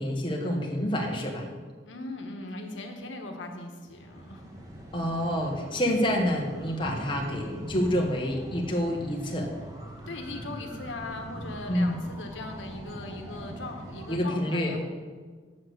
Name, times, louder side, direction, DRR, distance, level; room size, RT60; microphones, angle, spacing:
voice 1, 0.0-1.5 4.9-9.5 11.7-11.9 14.1-14.8, equal, 25° left, -1 dB, 1.3 m, -28 dB
voice 2, 1.8-4.4 10.1-14.8, left 2 dB, 85° left, 3 dB, 1.2 m, -39 dB
sound 1, 3.9-14.2, right 1 dB, 20° right, 1.3 m, -42 dB
7.4 x 6.4 x 7.7 m, 1.5 s
head